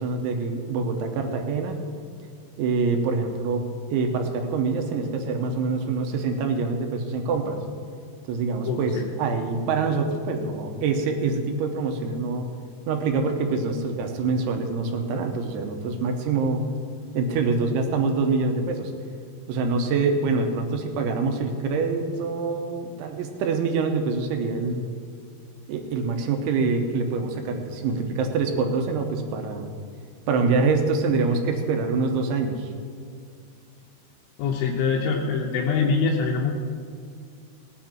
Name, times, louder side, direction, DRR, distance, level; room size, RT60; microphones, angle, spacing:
voice 1, 0.0-1.8 2.6-3.6 3.9-7.6 8.3-8.9 9.2-12.5 12.9-16.6 17.1-18.9 19.5-24.8 25.7-29.7 30.3-32.7, right 4 dB, 80° right, 4 dB, 3.4 m, -25 dB
voice 2, 8.7-9.0 34.4-36.5, left 5 dB, 85° left, 0 dB, 3.4 m, -24 dB
18.0 x 9.7 x 4.5 m, 2.2 s
omnidirectional pair, 5.4 m